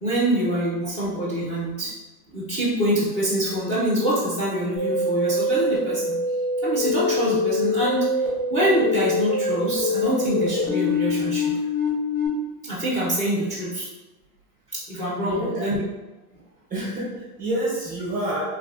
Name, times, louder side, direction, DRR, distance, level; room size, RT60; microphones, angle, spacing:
voice 1, 0.0-1.9 2.3-6.1 6.6-11.6 12.6-13.9 14.7-15.8, right 1 dB, 15° left, -9 dB, 0.6 m, -25 dB
sound 1, 4.8-12.3, left 2 dB, 60° left, 1.3 m, -24 dB
voice 2, 15.2-15.6 16.7-18.4, right 1 dB, 20° right, -6 dB, 0.7 m, -28 dB
3.3 x 2.3 x 2.3 m, 1.1 s
supercardioid pair, 145°, 46 cm